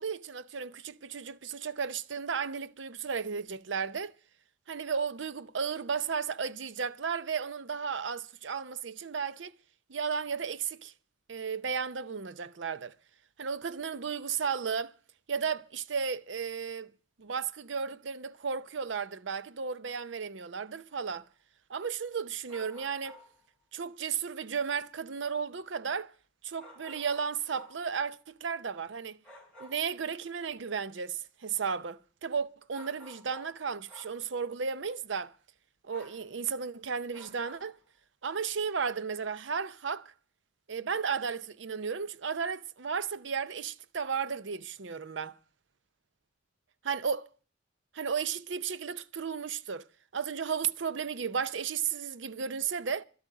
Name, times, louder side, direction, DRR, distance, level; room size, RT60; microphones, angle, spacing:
voice 1, 0.0-4.1 4.7-9.5 9.9-10.9 11.3-12.9 13.4-14.9 15.3-16.9 17.2-21.3 21.7-23.2 23.7-26.1 26.4-29.2 29.6-35.3 35.9-37.8 38.2-40.1 40.7-45.4 46.9-47.2 47.9-49.8 50.1-53.0, right 6 dB, 65° right, 0.6 m, -34 dB
sound 1, 21.0-21.1 22.5-23.4 26.6-27.9 29.2-29.9 32.7-33.6 33.9-34.2 35.9-36.3 37.1-37.8, equal, 5° left, 4.5 m, -52 dB
12.0 x 8.5 x 8.9 m
head